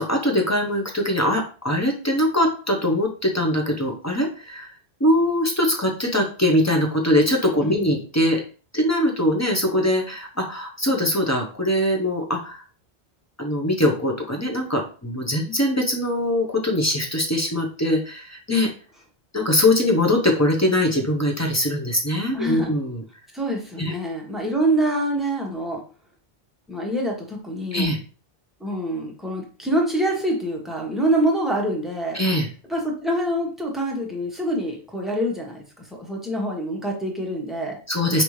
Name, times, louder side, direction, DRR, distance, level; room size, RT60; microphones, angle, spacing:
voice 1, 0.0-4.7 5.0-8.4 8.7-12.6 13.4-18.7 19.3-23.0 23.8-23.9 24.3-24.4 27.7-28.0 32.1-32.5 37.9-38.2, left 1 dB, 20° left, 1 dB, 0.7 m, -22 dB
voice 2, 7.6-8.0 22.3-22.7 23.3-25.8 26.7-27.9 28.6-32.2 32.7-35.6 35.9-37.7, right 1 dB, ahead, -2 dB, 1.0 m, -25 dB
5.2 x 2.7 x 3.1 m, 0.38 s
omnidirectional pair, 1.0 m